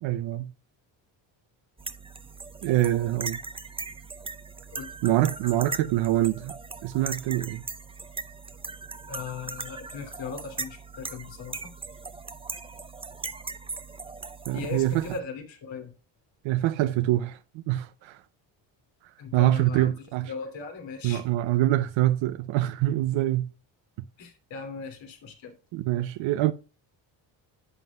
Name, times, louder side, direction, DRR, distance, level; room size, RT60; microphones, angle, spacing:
voice 1, 0.0-0.5 2.6-3.4 5.0-6.5 6.8-7.6 14.5-15.1 16.4-18.2 19.3-20.3 21.0-23.5 25.7-26.5, right 15 dB, 80° right, 0.6 m, -25 dB
sound 1, 1.8-15.2, right 4 dB, 10° right, 0.5 m, -39 dB
voice 2, 9.1-11.7 14.5-15.9 19.2-19.9 20.2-21.2 24.2-25.5, left 5 dB, 70° left, 2.7 m, -38 dB
11.0 x 7.5 x 2.3 m
cardioid pair, 90°, 46 cm